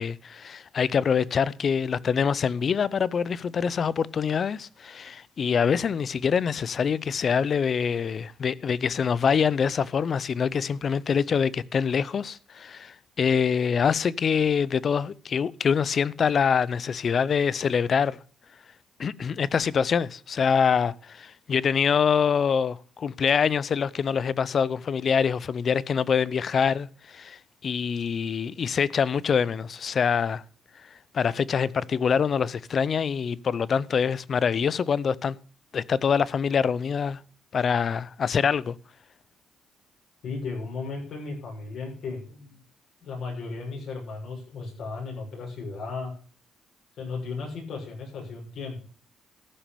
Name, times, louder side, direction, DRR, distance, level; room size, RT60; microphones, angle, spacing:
voice 1, 0.0-18.2 19.0-30.4 31.1-35.4 35.7-37.2 37.5-38.8, left 6 dB, 50° left, 0.5 m, -25 dB
voice 2, 40.2-42.6 43.0-46.1 47.0-48.8, left 4 dB, 70° left, 6.8 m, -35 dB
14.0 x 6.0 x 6.9 m
cardioid pair, 90°, 0 cm